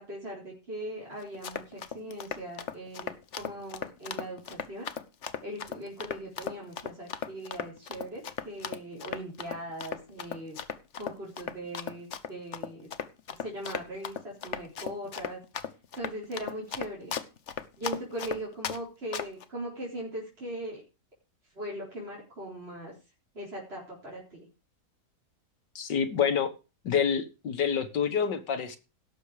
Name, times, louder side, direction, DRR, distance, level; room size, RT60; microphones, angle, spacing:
voice 1, 0.0-4.9 5.4-10.6 11.0-12.9 13.3-15.4 16.0-17.1 17.8-20.8 21.6-22.9 23.3-24.5, right 1 dB, 35° right, 4.4 m, -40 dB
Run, 1.2-18.8 19.1-19.4, left 7 dB, 50° left, 1.1 m, -36 dB
voice 2, 25.8-26.5 26.8-28.8, left 7 dB, 90° left, 2.1 m, -27 dB
17.0 x 7.2 x 4.9 m
omnidirectional pair, 1.8 m